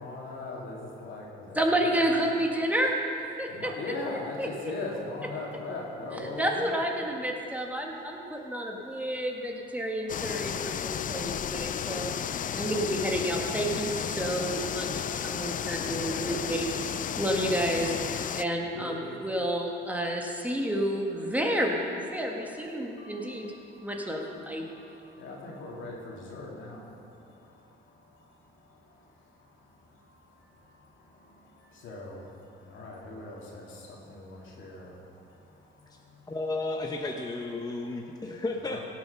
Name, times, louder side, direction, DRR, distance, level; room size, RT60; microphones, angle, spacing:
voice 1, 0.0-2.3 3.5-6.6 8.3-8.6 8.9-9.0 15.9-16.5 18.5-19.1 20.6-20.7 22.7-36.3 37.9-38.1 38.6-38.8, left 2 dB, 75° left, -3 dB, 2.8 m, -42 dB
voice 2, 1.5-2.9 3.4-3.7 4.4-4.5 6.4-12.1 12.5-23.5 23.8-24.6, right 1 dB, 5° right, 0 dB, 1.6 m, -30 dB
sound 1, 10.1-18.4, left 9 dB, 40° left, 0.4 m, -33 dB
voice 3, 36.3-38.8, left 2 dB, 20° left, 2 dB, 0.9 m, -33 dB
17.0 x 7.3 x 5.7 m, 2.7 s
cardioid pair, 90°, 20 cm